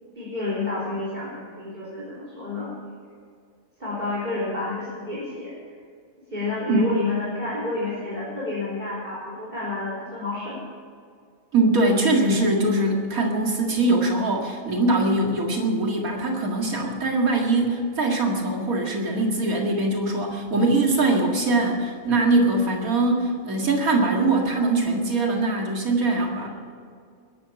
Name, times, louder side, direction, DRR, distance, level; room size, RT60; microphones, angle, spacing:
voice 1, 0.2-2.7 3.8-5.6 6.3-10.6 26.4-26.5, left 3 dB, 30° right, -8 dB, 4.1 m, -29 dB
voice 2, 11.5-26.5, right 2 dB, 85° right, 1 dB, 2.5 m, -22 dB
20.5 x 11.0 x 5.9 m, 2.2 s
omnidirectional pair, 1.5 m